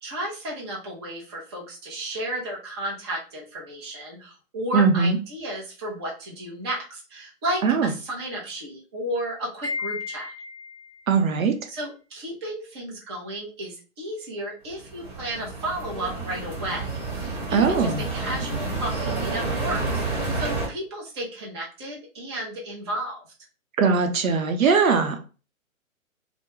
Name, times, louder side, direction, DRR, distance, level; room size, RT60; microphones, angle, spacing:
voice 1, 0.0-10.3 11.7-16.9 17.2-23.2, right 1 dB, 20° right, -3 dB, 0.5 m, -33 dB
voice 2, 4.7-5.2 7.6-7.9 11.1-11.5 17.5-18.0 23.8-25.2, right 5 dB, 75° right, 6 dB, 0.7 m, -20 dB
Wind chime, 9.6-11.0, left 4 dB, 25° left, 0.6 m, -33 dB
sound 1, 14.7-20.7, right 3 dB, 50° right, 1.1 m, -29 dB
2.2 x 2.1 x 3.1 m, 0.34 s
hypercardioid pair, 145°, 41 cm